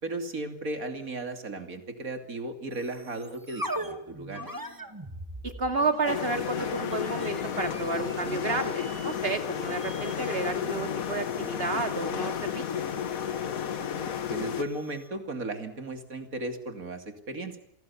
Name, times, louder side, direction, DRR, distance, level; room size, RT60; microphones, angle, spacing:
voice 1, 0.0-4.4 14.3-17.6, right 2 dB, 75° right, 6 dB, 3.3 m, -35 dB
sound 1, 2.7-15.2, right 1 dB, 15° right, 2.2 m, -43 dB
voice 2, 5.4-12.8, right 3 dB, 45° right, 6 dB, 2.8 m, -31 dB
sound 2, 6.1-14.6, left 8 dB, 80° left, 1.5 m, -32 dB
28.5 x 19.0 x 7.2 m, 0.82 s
omnidirectional pair, 1.5 m